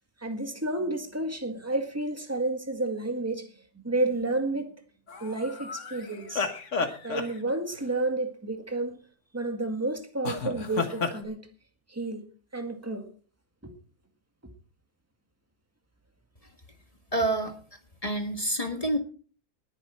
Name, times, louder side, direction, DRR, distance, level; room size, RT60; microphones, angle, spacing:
voice 1, 0.2-3.5 3.8-4.7 5.2-6.5 7.0-9.0 9.3-11.4 11.9-12.2 12.5-13.0 13.6-13.7, right 2 dB, 10° right, 1.8 m, -30 dB
sound 1, 5.1-7.8 10.2-11.2, left 4 dB, 55° left, 1.9 m, -32 dB
voice 2, 17.1-17.5 18.0-19.0, right 1 dB, 25° left, 1.7 m, -27 dB
20.0 x 8.6 x 4.4 m
omnidirectional pair, 1.6 m